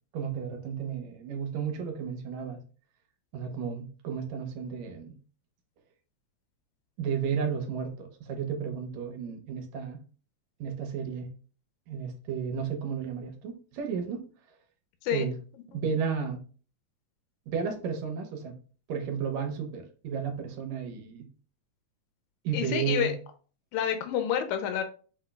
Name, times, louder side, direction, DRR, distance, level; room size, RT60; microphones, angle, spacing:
voice 1, 0.1-2.6 3.3-5.1 7.0-10.0 10.6-11.3 11.9-14.2 15.1-15.3 15.7-16.4 17.5-18.5 18.9-21.3 22.4-23.2, right 6 dB, 75° right, 4 dB, 1.9 m, -33 dB
voice 2, 22.5-23.1 23.7-24.8, left 9 dB, 85° left, 7 dB, 2.0 m, -28 dB
5.9 x 3.0 x 2.3 m, 0.39 s
omnidirectional pair, 3.4 m